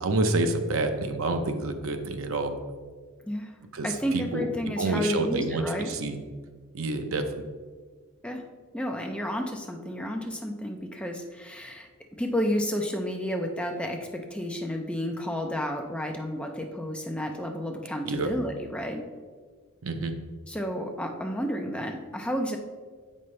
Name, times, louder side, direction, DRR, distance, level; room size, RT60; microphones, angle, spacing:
voice 1, 0.0-2.6 3.7-4.5 4.8-6.2 6.7-7.2 18.0-18.3 19.8-20.2, right 2 dB, 65° right, 7 dB, 0.6 m, -28 dB
voice 2, 3.8-5.9 8.2-8.4 8.7-11.9 12.2-19.0 20.5-22.6, equal, 5° left, 3 dB, 0.5 m, -31 dB
7.8 x 5.4 x 3.2 m, 1.5 s
head